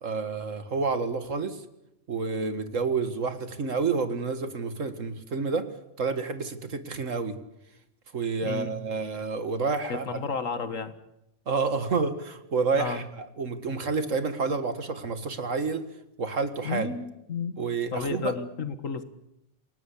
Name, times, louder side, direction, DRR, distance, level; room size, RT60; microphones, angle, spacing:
voice 1, 0.0-1.6 2.1-5.7 6.0-7.4 8.1-10.2 11.5-15.9 16.2-16.9 17.6-18.3, right 4 dB, 75° right, 9 dB, 2.2 m, -29 dB
voice 2, 9.9-10.9 12.7-13.1 16.6-17.6 17.9-19.0, left 5 dB, 85° left, 10 dB, 1.9 m, -32 dB
28.5 x 18.0 x 8.6 m, 0.88 s
omnidirectional pair, 1.3 m